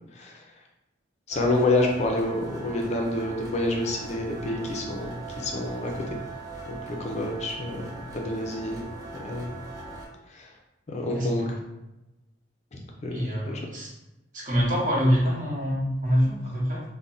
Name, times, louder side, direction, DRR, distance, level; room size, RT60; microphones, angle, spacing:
voice 1, 0.1-0.4 1.3-6.2 6.7-8.8 9.2-9.6 10.3-10.5 10.9-11.4 12.7-13.6, left 2 dB, 35° left, 0 dB, 0.4 m, -28 dB
sound 1, 1.3-10.1, right 3 dB, 20° right, 0.5 m, -40 dB
voice 2, 11.0-11.6 13.1-13.9 14.3-16.8, equal, 45° right, -4 dB, 0.8 m, -25 dB
2.4 x 2.1 x 3.8 m, 0.98 s
head